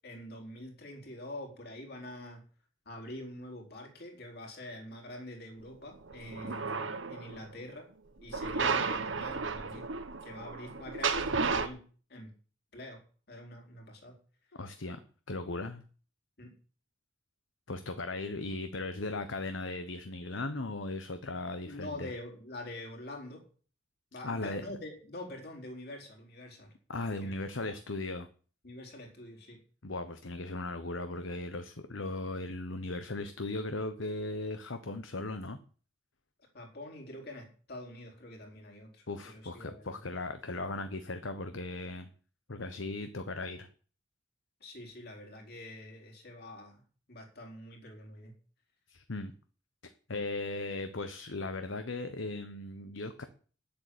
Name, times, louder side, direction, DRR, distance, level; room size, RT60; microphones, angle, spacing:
voice 1, 0.0-2.4 2.8-7.9 8.2-9.9 10.2-11.8 12.1-12.3 12.7-14.2 16.4-16.5 21.7-23.4 24.1-26.7 27.2-27.4 27.7-27.8 28.6-29.6 36.5-40.0 44.6-46.8 47.1-48.3, left 1 dB, 55° left, 1 dB, 4.4 m, -45 dB
sound 1, 6.0-7.4 8.3-11.7, right 4 dB, 70° right, 1.4 m, -33 dB
voice 2, 14.5-15.0 15.3-15.8 17.7-22.1 24.2-24.6 26.9-28.3 29.8-35.6 39.1-42.1 42.5-43.7 48.9-49.3 50.1-53.2, left 2 dB, 70° left, 9 dB, 1.1 m, -37 dB
10.5 x 8.6 x 8.5 m, 0.41 s
head